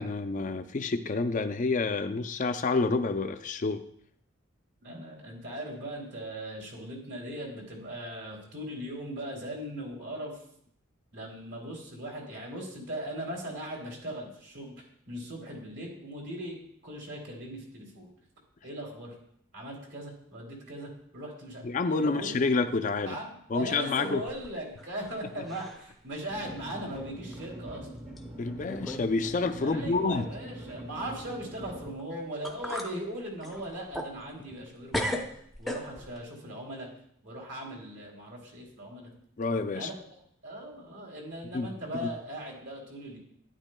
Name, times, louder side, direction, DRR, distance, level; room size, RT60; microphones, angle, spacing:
voice 1, 0.0-3.8 21.6-23.2 23.5-24.2 25.4-25.5 28.4-30.2 39.4-39.9 41.5-41.7 42.0-42.1, left 3 dB, 40° left, 8 dB, 0.4 m, -28 dB
voice 2, 4.8-10.4 11.1-18.1 18.6-19.1 19.5-21.6 22.0-22.3 23.0-27.9 29.6-35.2 35.6-36.9 37.2-39.1 39.7-39.9 40.4-43.2, right 1 dB, 55° right, -1 dB, 2.8 m, -39 dB
sound 1, 24.3-25.2 25.4-25.9 26.4-26.5 27.3-27.4 28.2-28.3 28.7-29.1 29.4-29.5 32.0-32.1 32.4-32.9 33.4-34.7 34.9-36.2, left 1 dB, ahead, 0.6 m, -36 dB
sound 2, 26.3-31.9, right 1 dB, 35° right, 1.3 m, -43 dB
12.0 x 9.7 x 2.2 m, 0.68 s
head